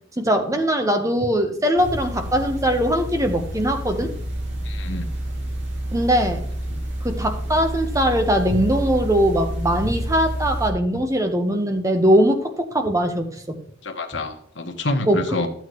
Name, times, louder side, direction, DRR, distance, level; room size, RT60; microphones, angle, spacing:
voice 1, 0.2-4.1 5.9-6.4 7.0-13.6 15.1-15.4, equal, 15° right, 6 dB, 1.0 m, -21 dB
sound 1, 1.8-10.7, equal, 70° right, 2.6 m, -29 dB
voice 2, 4.6-5.1 6.7-6.8 13.8-15.5, left 2 dB, 70° left, 5 dB, 1.3 m, -27 dB
13.0 x 8.0 x 3.1 m, 0.65 s
head